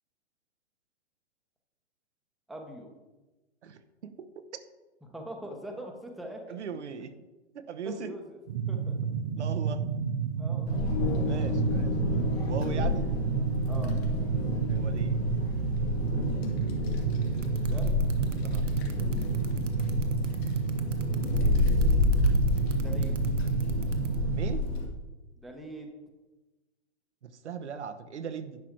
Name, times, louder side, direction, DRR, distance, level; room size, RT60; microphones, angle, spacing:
voice 1, 2.5-2.9 5.1-6.6 7.8-8.4 8.7-8.9 10.4-11.1 13.7-14.0 17.6-18.0 22.7-23.2 25.4-25.9, right 1 dB, ahead, 2 dB, 0.9 m, -42 dB
voice 2, 3.6-4.3 4.5-4.6 6.5-7.1 7.5-8.1 9.4-9.8 11.2-13.1 14.7-15.3 18.4-18.7 24.3-24.6 27.2-28.6, right 6 dB, 70° right, 10 dB, 0.9 m, -39 dB
sound 1, 8.5-24.6, right 6 dB, 30° right, 0.4 m, -31 dB
Wind, 10.7-24.9, left 3 dB, 60° left, 2.2 m, -30 dB
sound 2, 17.4-24.2, right 3 dB, 90° right, 1.2 m, -38 dB
10.5 x 6.0 x 4.7 m, 1.1 s
hypercardioid pair, 125°, 36 cm